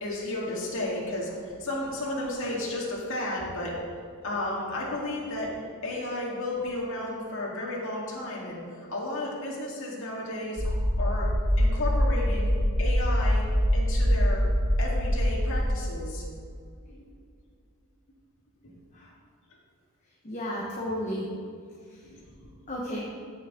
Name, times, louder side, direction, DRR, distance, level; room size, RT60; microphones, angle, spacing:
voice 1, 0.0-3.7 4.2-5.5 5.8-11.3 11.6-12.5 12.8-13.5 13.7-14.4 14.8-16.2 16.9-17.1 22.0-22.5, left 1 dB, 65° left, -4 dB, 2.1 m, -33 dB
sound 1, 10.6-15.7, equal, 50° right, 2.1 m, -24 dB
voice 2, 20.0-21.3 21.8-22.2 22.7-23.0, equal, 35° left, -3 dB, 1.1 m, -34 dB
14.5 x 6.0 x 3.7 m, 2.3 s
head